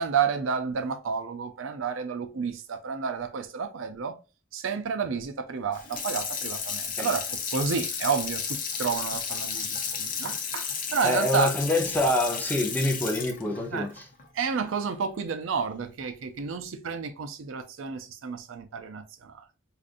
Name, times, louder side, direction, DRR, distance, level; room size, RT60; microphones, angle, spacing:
voice 1, 0.0-4.1 4.5-8.4 8.8-11.5 13.7-13.9 14.3-19.4, right 6 dB, 65° right, 0.5 m, -30 dB
Water tap faucet / Sink (filling or washing), 5.7-14.9 15.3-15.4, left 6 dB, 40° left, 0.7 m, -33 dB
voice 2, 11.0-14.0, left 1 dB, 10° left, 0.7 m, -26 dB
4.9 x 2.5 x 2.5 m
head